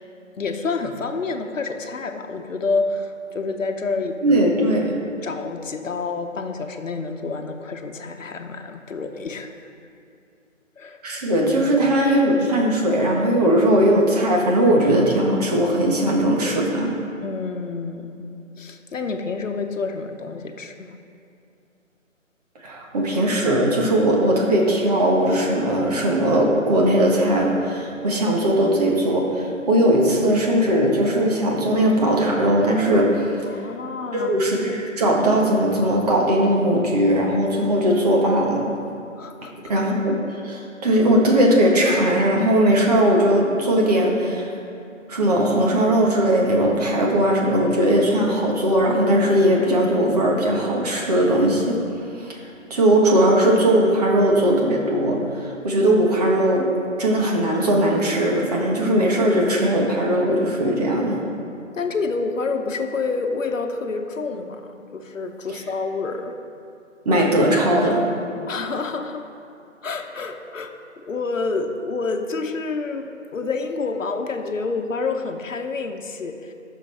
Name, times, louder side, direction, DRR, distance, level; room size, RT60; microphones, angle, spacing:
voice 1, 0.4-4.7 5.2-9.6 10.8-11.0 16.6-16.8 17.2-18.2 18.6-20.9 33.4-34.4 39.2-39.5 61.7-66.3 68.5-69.3 69.8-76.5, left 4 dB, 75° left, 5 dB, 1.1 m, -28 dB
voice 2, 4.2-4.9 11.0-16.9 22.6-33.3 34.1-38.7 39.7-40.2 40.4-44.5 45.1-51.8 52.2-52.3 52.7-56.7 57.0-61.2 67.0-68.1, right 1 dB, 30° right, -1 dB, 1.5 m, -19 dB
18.0 x 6.8 x 3.4 m, 2.5 s
figure-of-eight pair, 160°, 39 cm